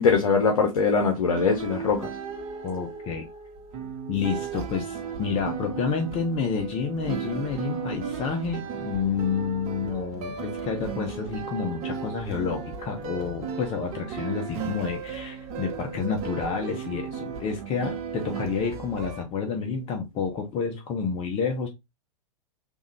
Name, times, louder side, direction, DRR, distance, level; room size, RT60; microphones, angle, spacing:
voice 1, 0.0-2.1, left 5 dB, 70° left, 0.9 m, -22 dB
sound 1, 1.3-19.2, right 6 dB, 35° right, 1.0 m, -35 dB
voice 2, 2.6-3.3 4.1-21.7, left 6 dB, 30° left, 0.8 m, -29 dB
3.6 x 2.6 x 3.2 m
figure-of-eight pair, 100°, 18 cm